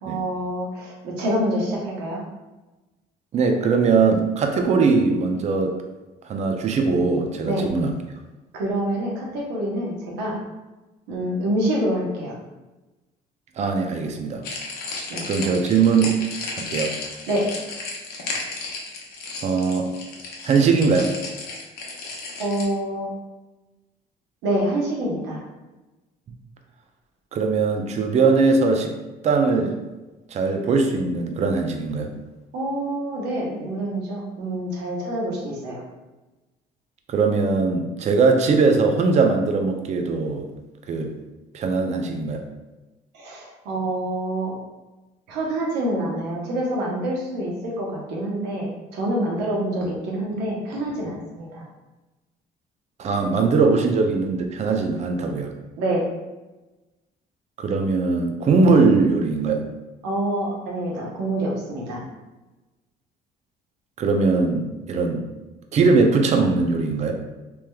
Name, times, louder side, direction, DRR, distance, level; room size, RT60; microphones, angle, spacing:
voice 1, 0.0-2.2 7.4-7.7 8.5-10.4 11.1-12.3 15.1-15.3 17.3-17.5 22.4-23.1 24.4-25.4 32.5-35.8 43.1-44.5 45.3-51.7 55.8-56.1 60.0-62.0, right 1 dB, 85° right, -2 dB, 0.9 m, -26 dB
voice 2, 3.3-5.7 6.3-7.9 13.6-14.4 15.3-16.2 16.6-16.9 19.4-19.9 20.4-21.1 27.3-28.9 29.2-29.8 30.3-32.1 37.1-40.5 40.9-41.1 41.5-42.4 53.0-55.5 57.6-59.6 64.0-65.2 65.7-67.2, right 4 dB, 40° right, 4 dB, 0.5 m, -20 dB
sound 1, 14.4-22.6, left 3 dB, 70° left, 0.8 m, -33 dB
3.3 x 2.9 x 2.2 m, 1.1 s
cardioid pair, 110°, 17 cm